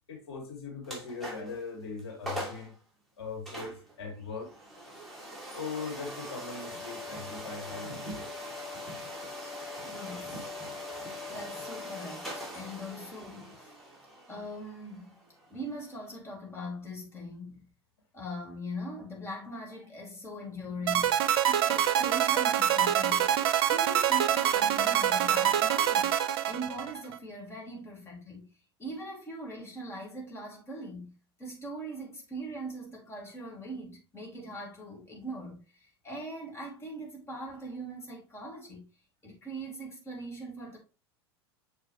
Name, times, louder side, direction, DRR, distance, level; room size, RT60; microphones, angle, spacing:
voice 1, 0.1-2.7 3.2-4.5 5.5-8.3, left 4 dB, 70° left, 2.3 m, -40 dB
sound 1, 0.8-1.6 2.0-2.1 2.3-2.7 3.5-16.2, left 1 dB, ahead, 2.8 m, -42 dB
voice 2, 9.8-10.5 11.3-13.7 14.3-15.1 15.5-17.7 18.1-23.3 23.6-28.5 28.8-38.8 39.2-40.8, equal, 20° left, 2.5 m, -41 dB
sound 2, 20.9-27.2, right 10 dB, 60° right, 0.6 m, -25 dB
6.7 x 4.8 x 3.1 m
figure-of-eight pair, 85°, 14 cm